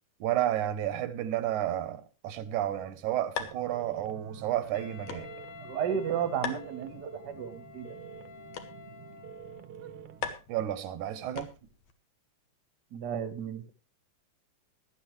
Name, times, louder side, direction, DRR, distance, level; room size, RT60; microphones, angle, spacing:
voice 1, 0.2-5.3 10.5-11.5, right 12 dB, 80° right, 2.4 m, -31 dB
sound 1, 2.6-11.9, left 7 dB, 70° left, 2.4 m, -44 dB
sound 2, 3.4-10.3, right 9 dB, 65° right, 1.6 m, -48 dB
Wind instrument woodwind instrument, 4.7-9.7, left 6 dB, 85° left, 2.6 m, -50 dB
voice 2, 5.6-7.9 12.9-13.7, right 8 dB, 45° right, 1.5 m, -33 dB
17.0 x 12.0 x 3.2 m
omnidirectional pair, 3.4 m